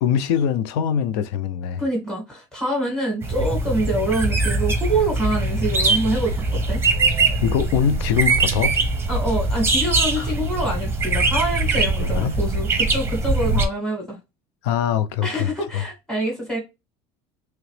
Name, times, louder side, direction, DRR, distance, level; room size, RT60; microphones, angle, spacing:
voice 1, 0.0-1.8 7.4-8.8 10.2-10.3 12.0-12.4 14.6-15.8, left 8 dB, 85° left, 0.5 m, -23 dB
voice 2, 1.8-6.8 9.1-14.2 15.2-16.6, right 1 dB, 5° left, 1.7 m, -26 dB
Evening Birds Mockingbird short, 3.2-13.7, right 3 dB, 15° right, 0.8 m, -22 dB
3.1 x 2.9 x 3.1 m
cardioid pair, 130°, 13 cm